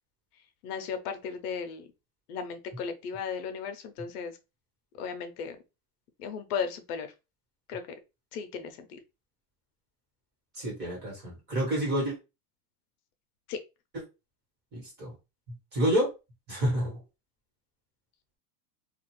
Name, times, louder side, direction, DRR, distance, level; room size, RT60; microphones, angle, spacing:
voice 1, 0.6-1.9 2.3-4.4 5.0-5.6 6.2-7.1 7.7-7.8 8.3-9.0 13.5-13.6, left 6 dB, 70° left, 0.7 m, -35 dB
voice 2, 10.5-12.1 14.7-15.1 15.7-16.1 16.5-17.0, equal, 20° right, 1.2 m, -28 dB
2.5 x 2.4 x 3.0 m
supercardioid pair, 170°, 48 cm